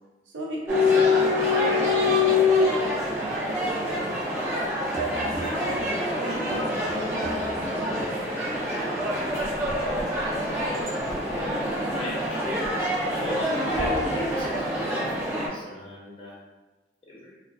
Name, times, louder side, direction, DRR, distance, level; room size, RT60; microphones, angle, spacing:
voice 1, 0.3-2.8 3.2-4.3 4.9-5.8 6.1-8.2 11.8-11.9, right 1 dB, 65° right, -2 dB, 0.5 m, -36 dB
sound 1, 0.7-15.5, left 2 dB, 15° right, 0.5 m, -25 dB
voice 2, 11.3-12.4 12.7-16.4 17.1-17.2, left 1 dB, 30° left, -6 dB, 0.6 m, -37 dB
2.4 x 2.4 x 2.3 m, 1.1 s
head